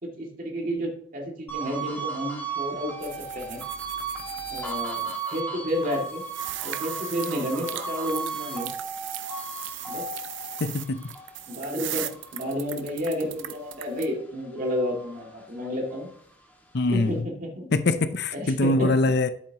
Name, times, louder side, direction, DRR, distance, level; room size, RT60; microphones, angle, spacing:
voice 1, 0.0-3.6 4.5-6.2 6.6-8.7 9.9-10.1 11.5-16.1 16.9-17.7 18.3-19.0, equal, 45° right, 2.3 m, -31 dB
sound 1, 1.5-14.1 14.5-16.2, right 4 dB, 10° left, 1.8 m, -36 dB
sound 2, 3.0-5.4 5.7-14.1, right 13 dB, 70° right, 0.6 m, -38 dB
voice 2, 10.6-11.0 16.7-17.1 17.7-19.3, left 2 dB, 55° left, 0.6 m, -23 dB
10.5 x 8.4 x 3.0 m
head